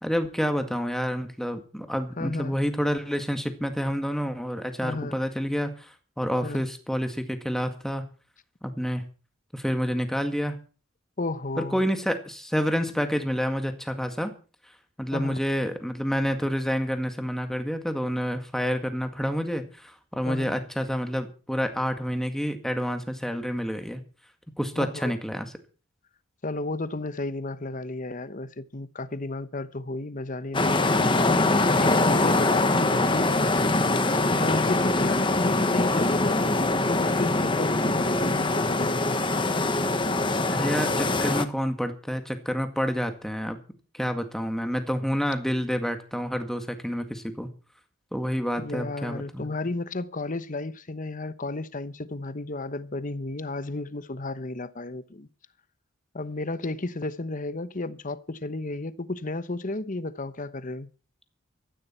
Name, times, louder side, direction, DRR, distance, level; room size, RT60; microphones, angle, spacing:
voice 1, 0.0-8.1 8.6-9.0 9.5-10.6 11.6-14.3 15.0-24.0 24.6-25.5 40.5-43.6 43.9-47.5 48.1-49.5, equal, ahead, 1.9 m, -28 dB
voice 2, 2.2-2.6 4.8-5.2 6.4-6.6 11.2-11.8 15.1-15.4 20.2-20.5 24.8-25.2 26.4-39.2 48.6-55.3 56.1-60.9, left 2 dB, 40° left, 1.0 m, -33 dB
sound 1, 30.5-41.5, left 2 dB, 25° left, 1.3 m, -23 dB
16.0 x 14.0 x 4.5 m
head